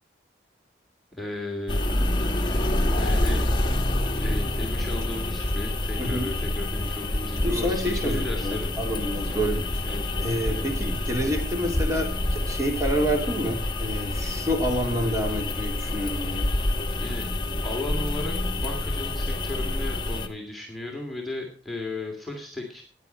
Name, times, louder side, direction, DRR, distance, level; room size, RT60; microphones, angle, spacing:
voice 1, 1.1-1.9 3.0-3.4 4.2-8.8 9.3-9.4 9.8-10.1 16.9-17.3 17.6-22.8, left 2 dB, ahead, -1 dB, 2.8 m, -35 dB
sound 1, 1.7-20.3, left 1 dB, 25° left, 1.4 m, -27 dB
voice 2, 6.0-6.3 7.4-9.8 10.2-16.5, equal, 20° right, 1 dB, 3.3 m, -28 dB
15.0 x 10.5 x 4.6 m, 0.40 s
head